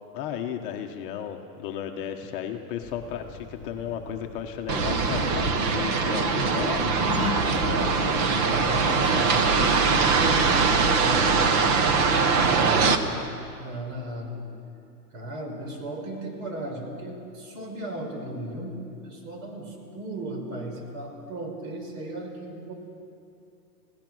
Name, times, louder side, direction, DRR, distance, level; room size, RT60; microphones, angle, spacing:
voice 1, 0.1-6.8, left 9 dB, 35° left, 4 dB, 1.2 m, -34 dB
Accelerating revving vroom, 2.8-10.2, left 4 dB, 5° left, 1.1 m, -37 dB
sound 1, 4.7-13.0, right 4 dB, 25° right, 0.9 m, -22 dB
voice 2, 7.3-13.2 13.6-14.4 15.1-22.7, right 1 dB, 55° right, 2 dB, 5.5 m, -36 dB
29.0 x 17.0 x 6.3 m, 2.6 s
hypercardioid pair, 160°, 47 cm